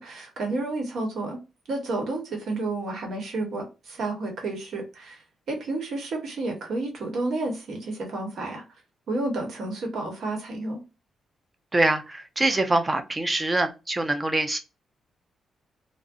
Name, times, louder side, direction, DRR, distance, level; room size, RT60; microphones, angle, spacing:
voice 1, 0.0-1.4 1.7-5.2 5.5-8.6 9.1-10.8, right 2 dB, 70° right, 1.0 m, -31 dB
voice 2, 11.7-14.6, right 2 dB, 20° right, 0.5 m, -24 dB
2.3 x 2.0 x 2.5 m
cardioid pair, 75°, 0 cm